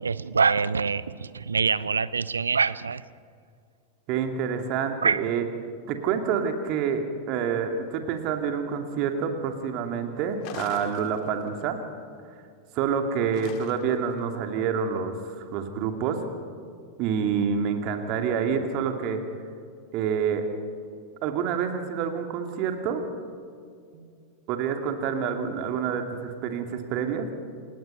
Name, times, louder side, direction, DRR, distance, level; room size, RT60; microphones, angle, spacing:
voice 1, 0.0-3.0 5.0-5.2, right 5 dB, 75° right, 18 dB, 0.6 m, -25 dB
voice 2, 4.1-5.5 5.9-11.8 12.7-16.2 17.0-19.2 19.9-20.4 21.2-23.0 23.9-24.0 24.5-27.3, right 7 dB, 45° right, 5 dB, 2.5 m, -27 dB
sound 1, 10.4-11.6 13.3-14.1, left 10 dB, 45° left, 1.6 m, -42 dB
28.0 x 19.0 x 5.8 m, 2.3 s
figure-of-eight pair, 90°, 0 cm